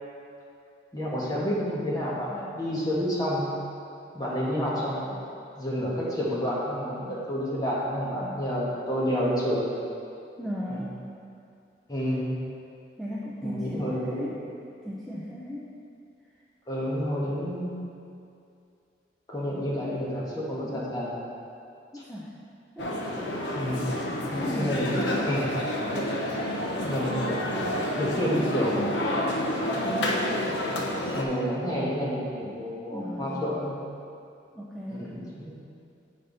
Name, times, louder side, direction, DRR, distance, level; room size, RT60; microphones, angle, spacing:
voice 1, 0.9-3.5 4.1-5.1 5.6-9.7 10.7-10.8 11.9-12.4 13.4-14.3 16.7-17.8 19.3-21.2 23.5-23.8 24.3-25.0 25.2-25.5 26.8-27.5 28.0-28.9 29.8-29.9 31.2-33.7 34.9-35.6, equal, 20° left, -7 dB, 1.4 m, -29 dB
voice 2, 10.4-11.1 13.0-14.4 14.8-15.7 21.9-22.4 22.8-22.9 23.8-25.3 32.9-33.6 34.5-35.4, left 1 dB, ahead, -7 dB, 0.5 m, -36 dB
sound 1, 22.8-31.2, left 1 dB, 75° left, 0.8 m, -29 dB
8.0 x 5.5 x 4.0 m, 2.6 s
head